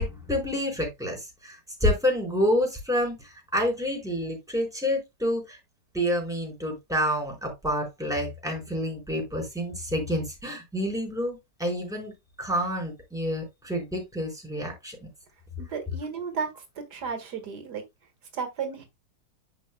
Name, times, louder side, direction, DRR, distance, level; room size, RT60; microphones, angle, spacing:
voice 1, 0.0-5.6 5.9-12.1 12.4-15.1, equal, ahead, 4.2 m, -28 dB
voice 2, 15.6-16.5 16.9-17.8 18.3-18.9, right 6 dB, 85° right, 2.1 m, -33 dB
10.0 x 7.0 x 2.2 m
omnidirectional pair, 1.7 m